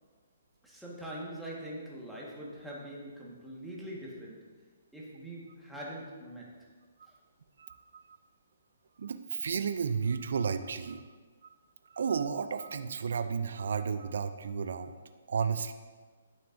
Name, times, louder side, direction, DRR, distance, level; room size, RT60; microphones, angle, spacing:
voice 1, 0.6-4.5 4.9-6.5, right 1 dB, ahead, -6 dB, 1.5 m, -43 dB
voice 2, 7.6-8.0 9.0-11.0 11.9-14.9 15.3-15.7, right 6 dB, 65° right, 10 dB, 0.4 m, -32 dB
10.0 x 6.0 x 2.6 m, 1.4 s
figure-of-eight pair, 135°, 0 cm